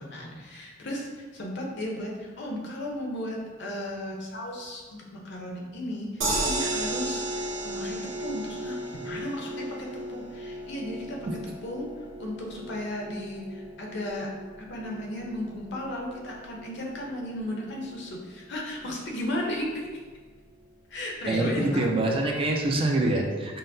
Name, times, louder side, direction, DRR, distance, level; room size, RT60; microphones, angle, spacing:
voice 1, 0.0-11.2 11.6-11.9 12.2-14.3 14.6-20.0 20.9-21.9, left 1 dB, 60° left, -1 dB, 0.7 m, -35 dB
sound 1, 6.2-18.4 18.8-18.9 19.2-19.3, right 1 dB, 70° right, 1.1 m, -35 dB
voice 2, 21.3-23.6, right 2 dB, 25° right, 0 dB, 0.3 m, -25 dB
5.5 x 2.0 x 2.6 m, 1.4 s
head